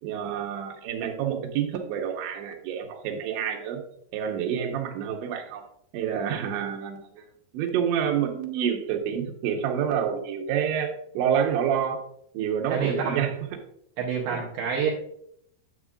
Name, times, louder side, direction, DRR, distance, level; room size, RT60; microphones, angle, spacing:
voice 1, 0.0-3.8 4.1-5.6 5.9-7.2 7.5-12.0 12.3-13.3 14.3-14.5, right 8 dB, 90° right, 2 dB, 3.3 m, -28 dB
voice 2, 12.7-13.2 14.0-14.9, right 6 dB, 75° right, -3 dB, 2.2 m, -27 dB
9.9 x 8.1 x 2.4 m, 0.71 s
omnidirectional pair, 5.2 m